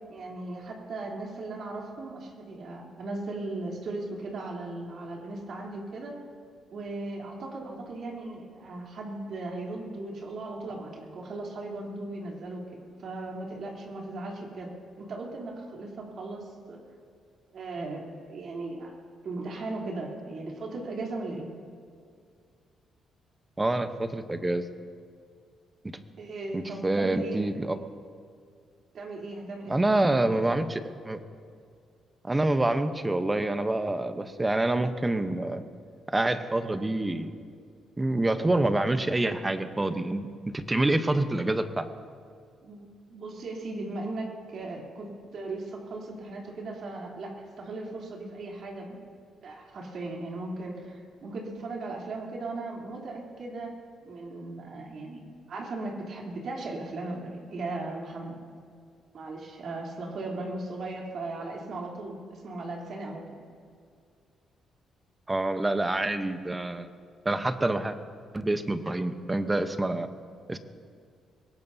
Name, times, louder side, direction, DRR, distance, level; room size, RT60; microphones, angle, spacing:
voice 1, 0.1-6.2 6.7-16.8 17.5-18.9 19.2-21.5 26.2-27.4 28.9-29.7 30.2-30.4 42.6-49.0 49.4-53.7 54.0-58.4 59.1-63.4, right 2 dB, 60° right, -2 dB, 3.3 m, -37 dB
voice 2, 23.6-24.7 26.5-27.8 29.7-31.2 32.2-35.6 36.1-37.3 38.0-40.3 40.5-41.9 65.3-66.9 67.2-68.0 68.3-70.1 70.5-70.6, right 2 dB, 15° right, 9 dB, 0.9 m, -27 dB
22.0 x 18.0 x 2.8 m, 2.2 s
cardioid pair, 90°, 0 cm